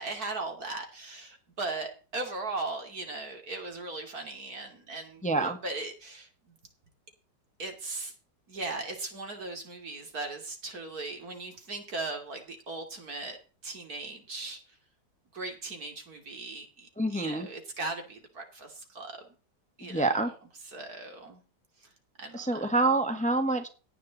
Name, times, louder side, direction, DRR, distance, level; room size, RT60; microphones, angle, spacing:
voice 1, 0.0-6.5 7.6-8.1 8.5-13.4 13.6-14.6 15.3-19.3 19.8-20.2 20.7-21.4 22.2-22.7, right 3 dB, 55° right, 4 dB, 3.1 m, -38 dB
voice 2, 5.2-5.6 17.0-17.5 19.8-20.3 22.3-23.7, right 2 dB, 5° left, 7 dB, 1.3 m, -27 dB
17.0 x 9.1 x 4.1 m, 0.36 s
omnidirectional pair, 1.9 m